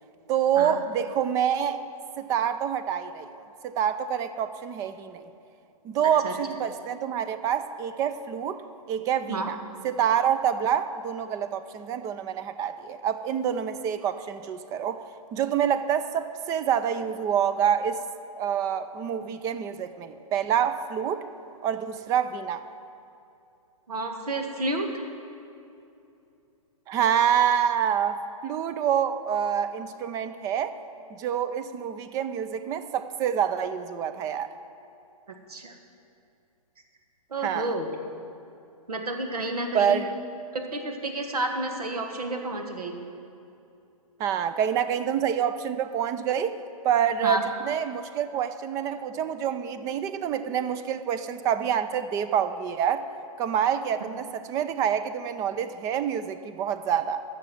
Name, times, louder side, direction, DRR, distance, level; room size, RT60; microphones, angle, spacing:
voice 1, 0.3-1.8 2.2-5.2 5.8-8.6 8.9-9.6 9.8-15.0 15.3-18.0 18.4-21.2 21.6-22.6 26.9-30.7 31.1-34.5 37.4-37.7 39.7-40.1 44.2-46.6 46.8-47.4 47.6-53.0 53.4-57.2, right 8 dB, 15° right, 12 dB, 0.4 m, -27 dB
voice 2, 6.0-6.3 9.3-9.5 23.9-24.9 35.5-35.8 37.3-37.9 38.9-40.0 40.5-43.0 47.2-47.4, right 2 dB, 85° right, 4 dB, 1.8 m, -30 dB
12.5 x 7.1 x 7.6 m, 2.7 s
hypercardioid pair, 140°, 19 cm